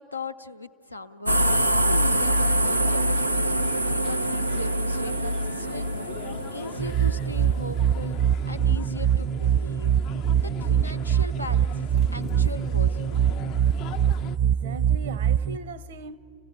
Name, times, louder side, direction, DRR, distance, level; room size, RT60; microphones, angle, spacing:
voice 1, 0.0-5.9 6.2-8.2 8.5-9.9 10.4-13.2, left 2 dB, 85° left, 0.6 m, -38 dB
sound 1, 1.3-8.1, right 1 dB, 85° right, 0.5 m, -25 dB
sound 2, 2.1-14.4, left 11 dB, 40° left, 0.5 m, -42 dB
sound 3, 6.8-15.6, right 9 dB, 25° right, 0.5 m, -24 dB
voice 2, 14.4-16.2, right 3 dB, 60° right, 0.8 m, -39 dB
28.5 x 16.0 x 9.0 m
figure-of-eight pair, 90°, 0 cm